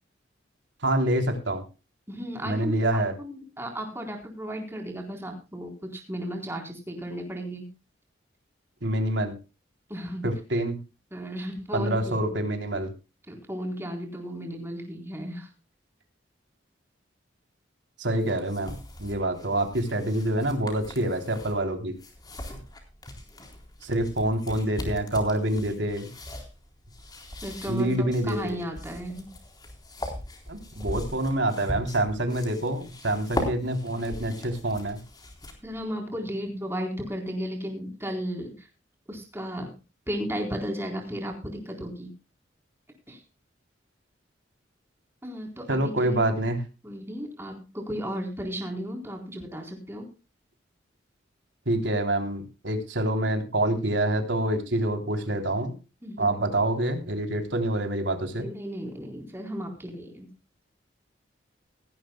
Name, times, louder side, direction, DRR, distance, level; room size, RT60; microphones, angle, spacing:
voice 1, 0.8-1.6 2.4-3.1 8.8-9.4 10.2-10.8 11.7-12.9 18.0-18.7 19.0-21.9 23.8-26.1 27.7-28.6 30.5-35.0 45.7-46.6 51.7-55.7 56.2-58.5, right 1 dB, 75° right, 5 dB, 3.4 m, -26 dB
voice 2, 2.1-7.6 9.9-10.3 11.1-12.3 13.3-15.5 27.4-29.3 35.6-38.7 39.1-39.7 40.1-42.1 43.1-43.2 45.2-46.2 46.8-50.1 56.0-56.3 58.4-60.3, equal, 15° right, 2 dB, 4.0 m, -34 dB
sound 1, 18.1-35.8, left 1 dB, 20° left, 3.9 m, -40 dB
18.0 x 15.0 x 2.3 m, 0.30 s
head